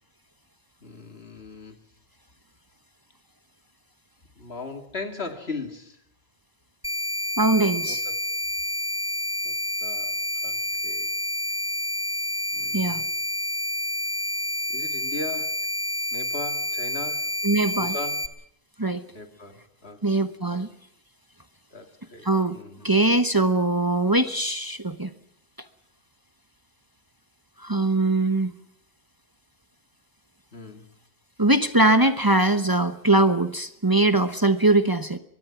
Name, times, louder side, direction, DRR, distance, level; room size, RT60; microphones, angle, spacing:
voice 1, 0.8-1.8 4.4-6.0 7.9-8.2 9.4-11.1 12.5-13.1 14.7-15.6 16.1-17.3 17.7-18.3 19.1-20.2 20.5-20.6 21.7-22.3 22.5-22.9 30.5-30.8, left 3 dB, 80° left, 7 dB, 2.8 m, -38 dB
sound 1, 6.8-18.3, left 1 dB, 5° left, 1.4 m, -29 dB
voice 2, 7.4-8.0 12.7-13.0 17.4-17.9 18.8-19.0 20.0-20.7 22.2-22.6 22.8-25.1 27.6-28.5 31.4-35.2, right 2 dB, 20° right, 10 dB, 1.0 m, -21 dB
23.5 x 22.0 x 6.0 m, 0.73 s
omnidirectional pair, 1.0 m